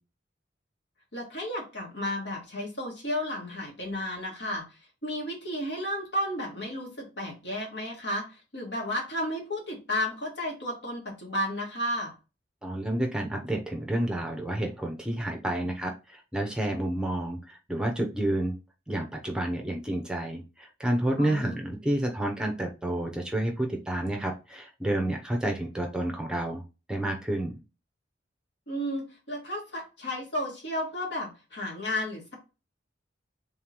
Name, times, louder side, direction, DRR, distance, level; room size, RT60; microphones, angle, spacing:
voice 1, 1.1-4.6 5.0-12.1 21.2-21.6 28.7-32.4, left 1 dB, 75° left, -2 dB, 1.8 m, -33 dB
voice 2, 12.6-18.5 18.9-26.6 26.9-27.5, right 1 dB, 5° right, 2 dB, 0.6 m, -30 dB
3.7 x 3.6 x 3.0 m, 0.29 s
head